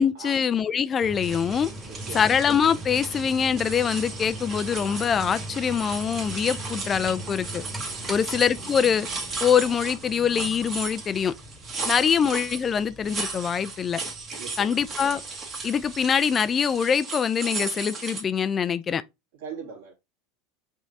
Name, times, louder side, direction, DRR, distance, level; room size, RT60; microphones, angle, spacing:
voice 1, 0.0-1.7 2.1-7.6 8.1-9.1 9.4-11.3 11.8-14.0 14.6-15.2 15.6-19.0, left 7 dB, 25° left, 0.3 m, -24 dB
sound 1, 1.0-17.0, right 1 dB, 10° right, 1.9 m, -41 dB
sound 2, 1.2-18.2, right 3 dB, 35° right, 1.5 m, -36 dB
voice 2, 1.9-2.3 8.1-8.4 11.8-12.1 14.4-14.8 19.4-19.9, right 6 dB, 80° right, 2.2 m, -41 dB
5.1 x 3.6 x 2.6 m
supercardioid pair, 125°, 0 cm